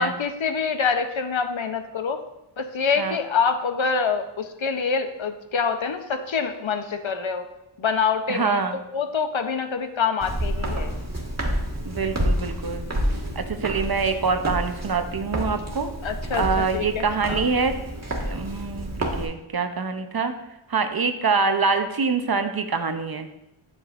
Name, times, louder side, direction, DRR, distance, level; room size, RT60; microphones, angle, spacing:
voice 1, 0.0-2.2 2.6-7.5 7.8-8.6 8.9-10.9 16.0-17.5, left 5 dB, 65° left, 7 dB, 0.7 m, -26 dB
voice 2, 8.3-8.8 11.9-12.9 13.4-15.9 16.4-17.8 18.2-18.9 19.2-20.3 20.7-23.3, right 4 dB, 50° right, 8 dB, 0.6 m, -25 dB
Walk footsteps, 10.2-19.3, equal, 30° right, 1.6 m, -29 dB
8.3 x 6.7 x 2.5 m, 0.87 s
wide cardioid pair, 45°, 50 cm